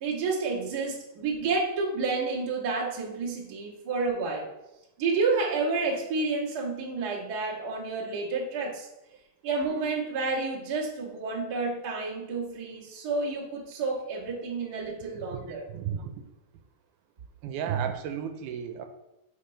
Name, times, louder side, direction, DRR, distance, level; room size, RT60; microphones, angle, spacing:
voice 1, 0.0-4.5 5.0-8.9 9.4-15.7, right 3 dB, 50° right, -4 dB, 1.2 m, -30 dB
voice 2, 15.7-16.3 17.4-18.9, right 8 dB, 85° right, 6 dB, 2.1 m, -33 dB
5.1 x 5.0 x 4.3 m, 0.91 s
omnidirectional pair, 3.6 m